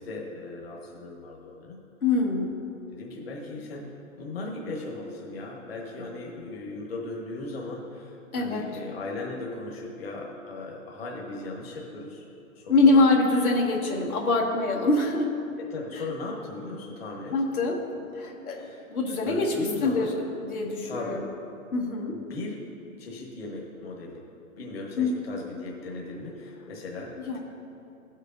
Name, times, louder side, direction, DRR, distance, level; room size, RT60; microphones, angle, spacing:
voice 1, 0.0-1.8 2.9-12.3 12.5-13.0 15.6-17.4 18.5-18.9 19.2-20.1 20.8-21.2 22.1-22.6 23.0-24.2 24.6-27.4, left 2 dB, 45° left, -2 dB, 1.4 m, -37 dB
voice 2, 2.0-2.5 8.3-8.7 12.7-15.3 17.3-17.8 18.1-20.1 20.4-21.3 21.7-22.2 25.0-25.2 27.3-27.4, left 2 dB, 85° left, -1 dB, 1.8 m, -24 dB
16.5 x 6.4 x 2.6 m, 2.7 s
hypercardioid pair, 165°, 42 cm